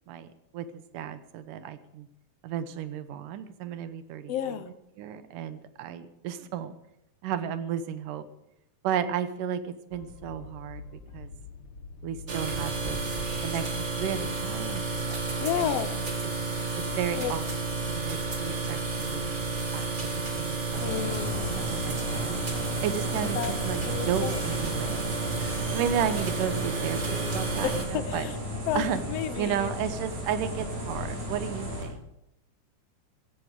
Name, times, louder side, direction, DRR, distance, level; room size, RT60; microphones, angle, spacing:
voice 1, 0.5-2.1 2.4-4.6 5.0-6.7 7.2-8.3 8.8-10.8 11.1-11.3 12.0-13.0 13.4-15.7 16.2-16.3 16.7-17.4 17.8-19.5 19.7-21.1 21.5-22.4 22.8-25.1 25.7-28.3 28.8-29.0 29.4-32.0, right 9 dB, 85° right, 12 dB, 2.6 m, -33 dB
voice 2, 4.3-4.7 15.4-15.9 17.1-17.3 20.8-21.6 23.4-23.5 23.8-24.4 27.6-28.4 28.7-29.7, left 10 dB, 80° left, 12 dB, 1.4 m, -31 dB
Train, 9.9-21.2, left 4 dB, 45° left, 1.8 m, -45 dB
sound 1, 12.3-27.8, right 4 dB, 25° right, 1.8 m, -31 dB
sound 2, 20.7-31.8, equal, 65° right, 5.5 m, -35 dB
16.0 x 15.0 x 4.9 m, 0.82 s
omnidirectional pair, 3.7 m